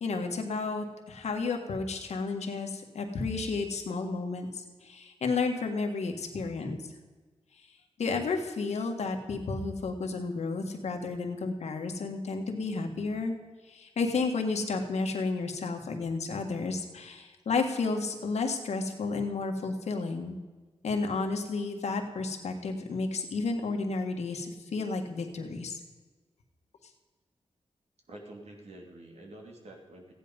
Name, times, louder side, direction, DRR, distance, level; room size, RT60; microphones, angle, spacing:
voice 1, 0.0-4.5 4.8-6.8 8.0-13.3 13.7-20.4 20.8-25.8, left 4 dB, 85° left, 4 dB, 1.7 m, -32 dB
voice 2, 28.1-30.1, right 1 dB, 75° right, 1 dB, 2.8 m, -48 dB
15.0 x 10.5 x 5.4 m, 1.3 s
wide cardioid pair, 80°, 11 cm